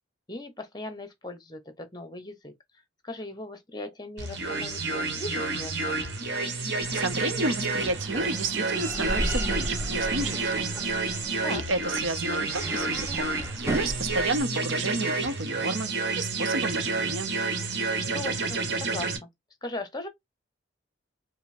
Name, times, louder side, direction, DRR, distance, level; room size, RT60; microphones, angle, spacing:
voice 1, 0.3-2.5 3.0-6.1 11.4-11.6 18.1-19.3 19.6-20.1, left 2 dB, 20° left, 0.8 m, -38 dB
sound 1, 4.2-19.2, right 3 dB, 55° right, 1.2 m, -30 dB
voice 2, 6.6-10.7 11.5-15.9 16.2-17.3, right 2 dB, 80° right, 0.7 m, -31 dB
sound 2, 6.8-14.4, right 1 dB, 15° right, 0.9 m, -35 dB
5.2 x 2.1 x 2.6 m
head